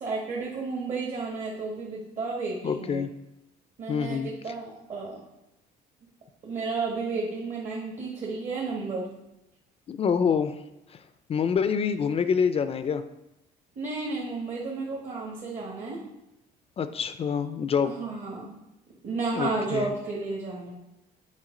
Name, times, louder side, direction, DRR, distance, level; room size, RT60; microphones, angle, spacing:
voice 1, 0.0-3.0 3.8-5.2 6.4-9.1 13.7-16.0 17.8-18.5 19.0-20.7, right 3 dB, 45° right, -3 dB, 1.5 m, -32 dB
voice 2, 2.6-3.1 3.9-4.3 9.9-10.6 10.9-11.0 11.3-13.0 16.8-18.0 19.3-19.9, left 6 dB, 35° left, 11 dB, 0.4 m, -26 dB
7.4 x 4.6 x 3.8 m, 0.90 s
cardioid pair, 110°, 17 cm